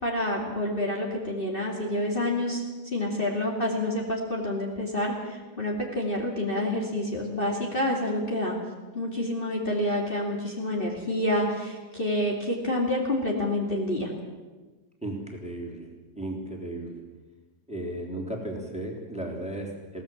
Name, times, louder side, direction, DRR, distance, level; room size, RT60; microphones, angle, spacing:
voice 1, 0.0-2.6 2.9-8.5 8.9-14.1, left 1 dB, 35° left, -2 dB, 2.7 m, -28 dB
voice 2, 15.0-15.9 16.1-17.0 17.7-20.0, right 1 dB, 5° right, -1 dB, 3.3 m, -35 dB
21.5 x 17.5 x 7.2 m, 1.3 s
omnidirectional pair, 1.7 m